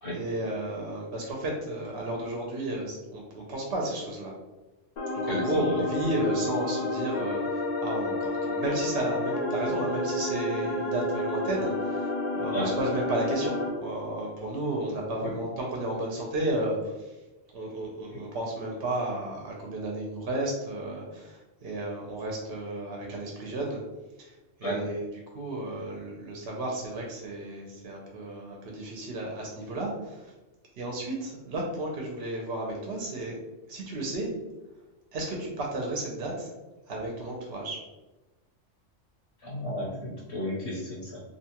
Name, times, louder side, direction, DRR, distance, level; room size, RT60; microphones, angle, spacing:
voice 1, 0.1-4.3 5.1-17.2 17.5-23.8 24.2-30.3 30.8-33.4 33.7-34.3 35.1-36.5 36.9-37.8, right 1 dB, 60° right, -1 dB, 0.7 m, -33 dB
sound 1, 5.0-13.7, left 2 dB, 50° left, 0.5 m, -30 dB
voice 2, 5.3-5.8 12.5-12.7 15.2-15.3 24.6-24.8 39.4-41.2, equal, 65° left, -5 dB, 1.0 m, -33 dB
2.7 x 2.3 x 2.8 m, 1.1 s
omnidirectional pair, 1.3 m